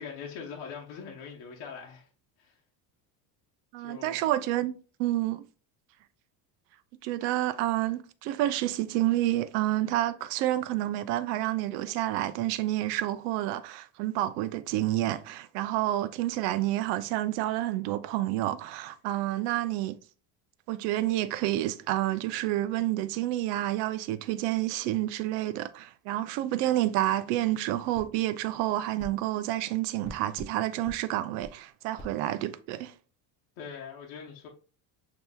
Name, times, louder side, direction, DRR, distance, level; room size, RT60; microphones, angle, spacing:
voice 1, 0.0-2.1 2.4-2.6 3.8-4.2 33.6-34.5, left 6 dB, 70° left, 1.0 m, -42 dB
voice 2, 3.7-4.7 5.0-5.4 7.0-20.0 20.7-32.9, right 14 dB, 75° right, 0.5 m, -29 dB
sound 1, 27.9-28.1 29.0-29.2 30.0-30.6 30.9-31.0 31.4-31.6 32.0-32.1, left 1 dB, 15° left, 0.3 m, -43 dB
6.7 x 2.9 x 2.2 m
cardioid pair, 160°, 43 cm